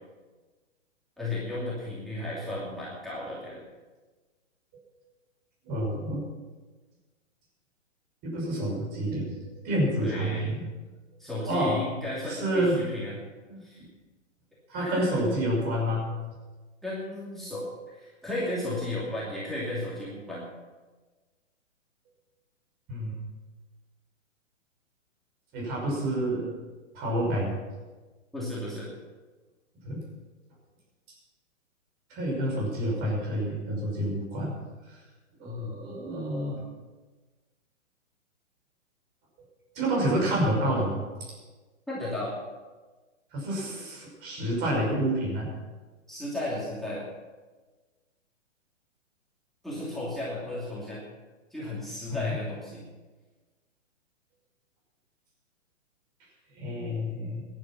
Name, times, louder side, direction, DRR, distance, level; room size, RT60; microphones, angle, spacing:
voice 1, 1.2-3.6 10.0-10.5 11.2-13.2 13.6-13.8 14.7-15.4 16.8-20.5 28.3-28.9 35.4-35.8 41.9-42.4 46.1-47.0 49.6-51.0 51.5-52.8, left 1 dB, ahead, -8 dB, 2.7 m, -34 dB
voice 2, 5.6-6.2 8.2-10.7 11.5-11.8 12.3-12.8 13.5-13.9 14.7-16.1 22.9-23.2 25.5-26.5 26.9-27.6 29.8-30.0 32.1-34.5 34.9-35.0 35.4-36.6 39.7-41.0 43.3-45.5 52.1-52.3 56.5-57.5, right 1 dB, 25° right, -3 dB, 5.7 m, -28 dB
16.5 x 11.0 x 6.0 m, 1.3 s
hypercardioid pair, 150°, 38 cm